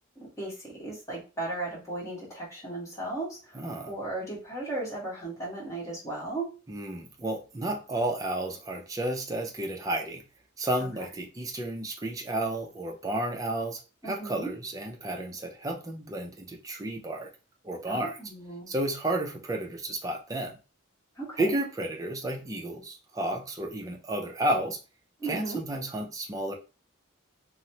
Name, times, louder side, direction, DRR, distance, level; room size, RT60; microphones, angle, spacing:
voice 1, 0.2-6.5 10.8-10.9 14.0-14.5 17.8-18.7 21.2-21.6 25.2-25.6, right 2 dB, 15° left, 1.2 m, -36 dB
voice 2, 3.5-3.9 6.7-10.2 10.6-17.3 17.6-18.2 18.7-20.6 21.4-24.8 25.2-26.5, right 1 dB, 15° right, 0.5 m, -32 dB
3.0 x 2.0 x 2.7 m
head